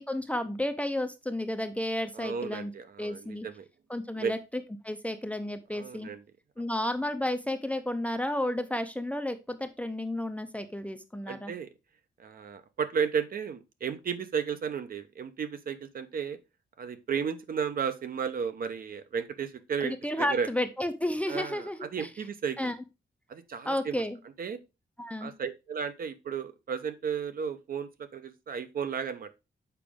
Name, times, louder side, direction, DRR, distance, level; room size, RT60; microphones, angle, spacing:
voice 1, 0.0-2.7 3.0-3.5 3.9-4.4 4.8-6.1 6.6-11.5 19.8-22.1 22.6-22.8 23.7-24.2 25.0-25.3, left 1 dB, 5° left, 0.5 m, -32 dB
voice 2, 2.1-3.6 4.2-4.3 5.7-6.2 11.3-11.7 12.2-16.4 16.8-20.5 21.3-22.7 23.3-24.0 24.4-24.6 25.2-29.3, right 6 dB, 50° right, 0.7 m, -34 dB
6.8 x 5.0 x 3.5 m
wide cardioid pair, 180°, 19 cm